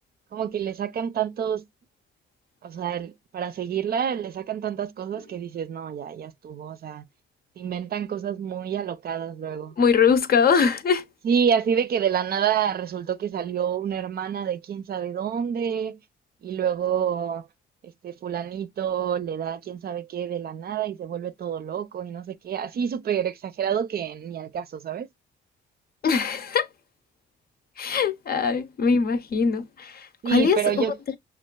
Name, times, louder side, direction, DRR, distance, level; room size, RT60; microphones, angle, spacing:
voice 1, 0.3-1.7 2.6-7.0 7.6-9.7 11.2-16.0 16.4-17.5 17.8-25.1 30.2-31.0, right 8 dB, 50° right, 0.5 m, -28 dB
voice 2, 9.8-11.0 26.0-26.7 27.8-30.8, left 6 dB, 50° left, 0.7 m, -22 dB
6.2 x 2.4 x 2.2 m
cardioid pair, 90°, 20 cm